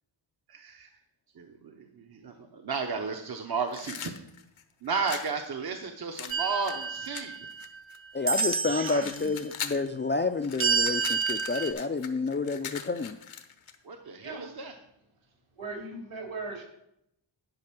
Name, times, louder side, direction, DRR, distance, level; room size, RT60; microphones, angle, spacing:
voice 1, 0.5-0.9 1.3-4.1 4.8-7.4 13.9-14.7, right 5 dB, 50° right, 4 dB, 0.9 m, -33 dB
sound 1, 3.7-5.3 6.2-8.0 8.3-9.9 10.2-13.8, left 8 dB, 80° left, 0.9 m, -40 dB
sound 2, 6.3-7.8 8.3-9.1 10.6-11.7, right 5 dB, 30° right, 0.5 m, -29 dB
voice 2, 8.1-13.2, left 3 dB, 25° left, 8 dB, 0.3 m, -29 dB
voice 3, 8.7-9.3 14.2-14.6 15.5-16.6, right 3 dB, 75° right, -1 dB, 3.2 m, -38 dB
10.5 x 5.3 x 5.9 m, 0.79 s
wide cardioid pair, 110°, 48 cm